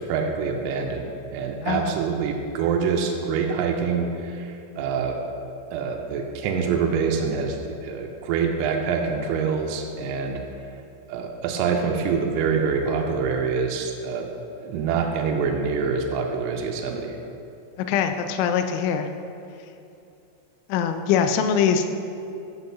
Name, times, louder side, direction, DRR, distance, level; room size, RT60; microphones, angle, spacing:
voice 1, 0.0-5.2 5.7-10.4 11.1-14.3 14.6-17.2, right 5 dB, 85° right, 1 dB, 3.3 m, -25 dB
voice 2, 1.6-1.9 17.9-19.1 20.7-21.9, left 7 dB, 85° left, 7 dB, 2.7 m, -22 dB
10.5 x 7.9 x 2.7 m, 2.7 s
omnidirectional pair, 5.9 m